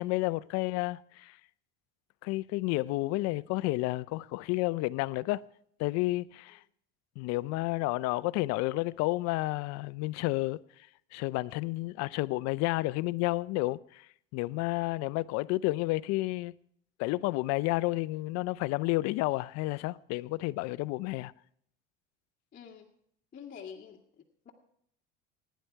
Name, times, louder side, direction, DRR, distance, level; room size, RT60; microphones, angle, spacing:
voice 1, 0.0-1.4 2.2-5.4 5.8-6.6 7.2-10.6 11.1-14.1 14.3-16.5 17.0-21.3, left 20 dB, 60° left, 0.6 m, -31 dB
voice 2, 22.5-22.9 23.3-24.5, left 7 dB, 30° left, 1.9 m, -47 dB
23.5 x 10.5 x 4.6 m
supercardioid pair, 110°, 29 cm